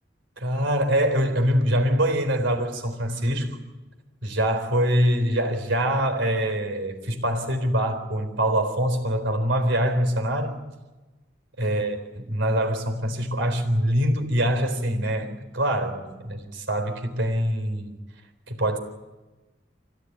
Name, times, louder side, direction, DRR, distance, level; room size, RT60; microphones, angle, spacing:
voice 1, 0.4-3.6 4.2-10.6 11.6-12.0 12.3-18.0 18.5-18.8, equal, 80° right, 4.0 m, -24 dB
26.0 x 16.5 x 9.9 m
head